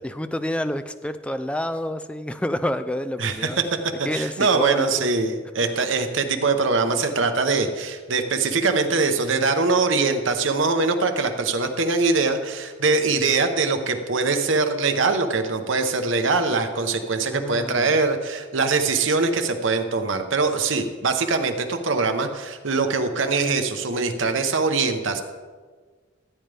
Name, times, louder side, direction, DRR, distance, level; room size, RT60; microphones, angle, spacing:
voice 1, 0.0-3.6 4.0-5.1 17.3-18.0, left 1 dB, 5° left, 10 dB, 0.4 m, -28 dB
voice 2, 3.2-3.6 4.0-25.2, right 4 dB, 80° right, 6 dB, 1.0 m, -22 dB
14.5 x 8.9 x 3.5 m, 1.5 s
head